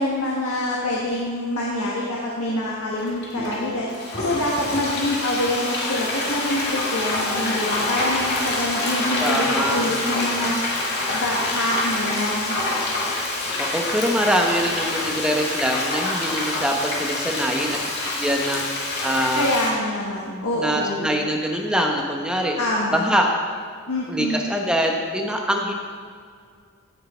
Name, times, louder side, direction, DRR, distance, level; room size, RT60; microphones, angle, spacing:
voice 1, 0.0-3.9 4.2-10.6 11.1-12.5 19.3-21.1 22.6-23.0 23.9-24.5, left 1 dB, 75° left, -4 dB, 1.6 m, -25 dB
Frying (food), 3.0-19.7, left 2 dB, 50° left, 2.2 m, -26 dB
voice 2, 9.2-9.9 13.6-18.7 19.0-19.5 20.6-22.6 22.9-23.3 24.1-25.7, equal, 5° right, 1 dB, 1.0 m, -24 dB
15.5 x 6.7 x 4.4 m, 2.1 s
head